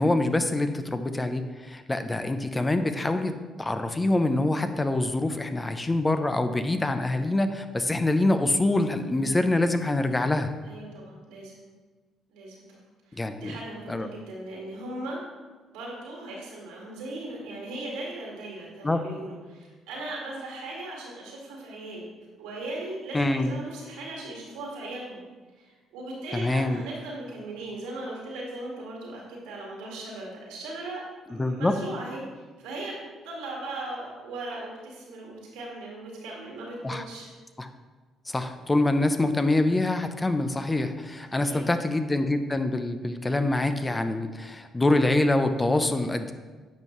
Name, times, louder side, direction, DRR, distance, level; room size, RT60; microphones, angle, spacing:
voice 1, 0.0-3.3 3.6-10.5 13.2-13.5 13.9-14.1 18.8-19.0 23.1-23.5 26.3-26.8 31.4-31.7 36.8-37.0 37.6-37.7 38.3-46.3, left 2 dB, 20° left, 8 dB, 0.6 m, -25 dB
voice 2, 10.6-11.6 12.3-12.8 13.1-15.2 15.7-22.1 22.4-25.2 25.6-31.0 31.3-37.3 41.3-41.6, right 2 dB, 80° right, -3 dB, 1.9 m, -38 dB
9.2 x 5.3 x 3.2 m, 1.3 s
hypercardioid pair, 55°, 0 cm